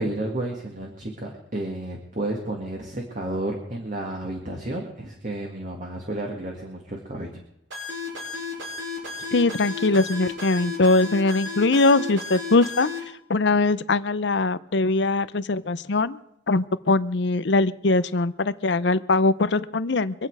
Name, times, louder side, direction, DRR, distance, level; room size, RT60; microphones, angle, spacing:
voice 1, 0.0-7.3, right 1 dB, 40° right, 0 dB, 2.0 m, -31 dB
sound 1, 7.7-13.0, left 4 dB, 85° right, 7.1 m, -33 dB
voice 2, 9.3-12.9 13.3-16.2 16.5-20.3, left 3 dB, 65° left, 14 dB, 0.7 m, -21 dB
25.0 x 8.8 x 4.8 m, 0.78 s
head